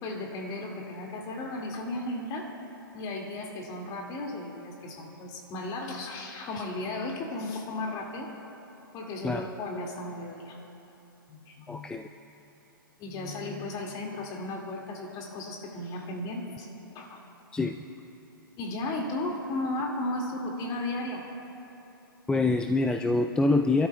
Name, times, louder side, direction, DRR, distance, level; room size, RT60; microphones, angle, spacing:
voice 1, 0.0-2.5 2.9-8.3 8.9-10.6 11.3-11.9 13.0-16.7 16.9-17.2 18.6-21.2, left 2 dB, 35° left, 0 dB, 2.3 m, -35 dB
voice 2, 11.7-12.1 17.5-17.8 22.3-23.9, left 3 dB, 5° left, 6 dB, 0.4 m, -25 dB
29.5 x 13.0 x 2.3 m, 3.0 s
hypercardioid pair, 120°, 12 cm